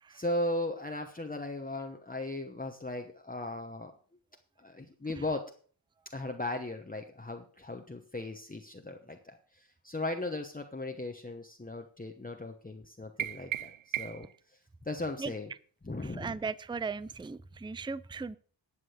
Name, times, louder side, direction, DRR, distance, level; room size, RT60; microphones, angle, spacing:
voice 1, 0.1-3.9 4.6-5.4 6.1-14.3 14.8-15.5 15.8-16.4, left 2 dB, 20° left, 4 dB, 1.0 m, -37 dB
sound 1, 13.2-14.4, right 11 dB, 85° right, 0.6 m, -36 dB
voice 2, 16.0-18.4, right 4 dB, 10° right, 18 dB, 0.4 m, -37 dB
11.5 x 7.6 x 6.4 m, 0.43 s
wide cardioid pair, 85°, 47 cm